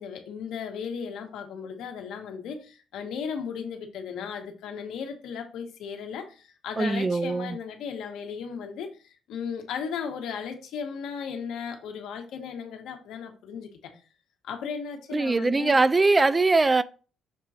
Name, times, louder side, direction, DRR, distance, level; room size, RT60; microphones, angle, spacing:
voice 1, 0.0-13.9 14.4-15.8, left 6 dB, 85° left, 1.3 m, -36 dB
voice 2, 6.8-7.6 15.1-16.8, right 3 dB, 20° right, 0.3 m, -22 dB
6.7 x 3.8 x 4.3 m
cardioid pair, 120°, 0 cm